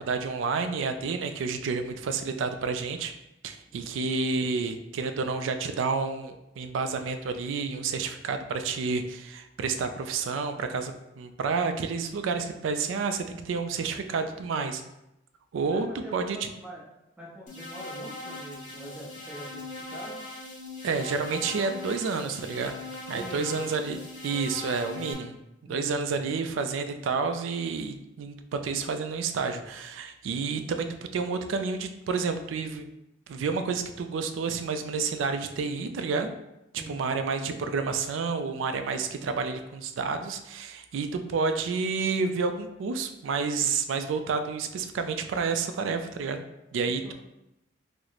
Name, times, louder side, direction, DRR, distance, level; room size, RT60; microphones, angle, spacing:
voice 1, 0.0-3.1 3.4-14.8 15.5-16.5 20.8-22.8 23.1-25.3 25.7-32.9 33.3-36.3 36.7-46.4 46.7-47.1, right 4 dB, 75° right, 8 dB, 0.3 m, -30 dB
voice 2, 15.7-16.8 17.2-20.2 23.1-23.6 25.6-26.0 36.8-37.0 46.9-47.1, right 1 dB, 5° right, -5 dB, 0.7 m, -44 dB
sound 1, 17.5-25.1, left 2 dB, 40° left, 1.0 m, -40 dB
3.0 x 2.1 x 3.9 m, 0.88 s
head